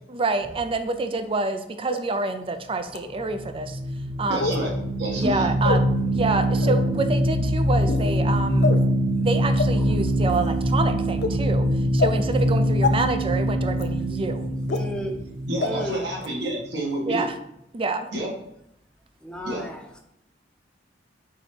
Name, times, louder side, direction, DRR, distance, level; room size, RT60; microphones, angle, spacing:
voice 1, 0.1-3.8 4.2-4.6 5.1-8.7 9.2-11.7 11.9-14.5 17.1-17.3 17.7-18.1, right 3 dB, 30° right, 8 dB, 0.4 m, -27 dB
sound 1, 1.9-2.0 2.9-3.0 4.4-4.6 5.6-5.8 6.6-6.8 7.8-8.0 8.6-8.8 9.6-9.7 10.3-10.5 11.2-11.3 12.0-12.1 12.8-12.9 13.8-13.9 14.7-14.8 15.6-15.7 16.2-16.3, left 3 dB, 65° left, 0.6 m, -25 dB
sound 2, 3.2-16.4, equal, 50° right, 2.4 m, -24 dB
voice 2, 4.3-4.7 5.0-5.5 15.4-17.2 18.1-18.3 19.4-19.7, right 1 dB, 70° right, -2 dB, 1.8 m, -29 dB
voice 3, 14.7-15.1 15.6-16.0 19.2-19.8, right 1 dB, 5° left, 1 dB, 0.8 m, -33 dB
4.7 x 4.0 x 5.0 m, 0.80 s
head